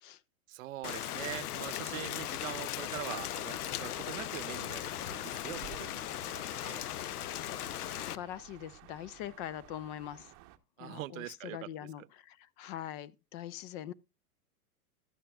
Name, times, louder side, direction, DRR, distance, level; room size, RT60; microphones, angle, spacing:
voice 1, 0.5-4.8 5.1-6.8 10.8-11.7 12.0-12.1, right 17 dB, 60° right, 0.6 m, -43 dB
Rain, 0.8-8.2, left 13 dB, 85° left, 0.6 m, -38 dB
sound 1, 3.4-10.6, right 13 dB, 40° right, 1.0 m, -54 dB
voice 2, 7.9-10.3 10.8-13.9, left 11 dB, 35° left, 0.5 m, -43 dB
12.5 x 8.7 x 2.3 m
hypercardioid pair, 125°, 44 cm